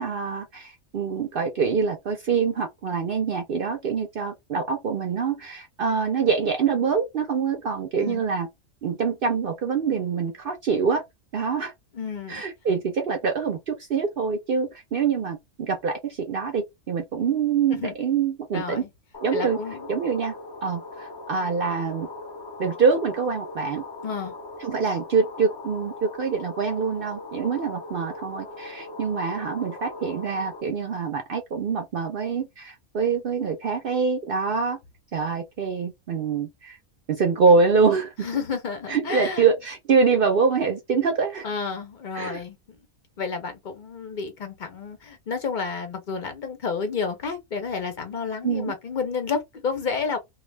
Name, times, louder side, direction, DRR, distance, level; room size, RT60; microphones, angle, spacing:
voice 1, 0.0-8.5 8.8-11.0 11.3-11.7 12.3-18.8 19.2-19.6 19.9-20.3 20.6-22.1 22.6-23.8 24.6-34.8 35.1-36.8 37.1-38.3 38.9-41.5 42.1-42.4 48.4-48.7, right 5 dB, 65° right, 0.5 m, -25 dB
voice 2, 11.9-12.4 17.7-17.9 18.5-18.9 19.3-19.9 24.0-24.3 38.2-39.5 41.4-42.6 43.2-50.2, left 5 dB, 55° left, 0.5 m, -30 dB
sound 1, 19.1-30.6, left 2 dB, 20° left, 0.8 m, -40 dB
2.3 x 2.3 x 3.2 m
omnidirectional pair, 1.5 m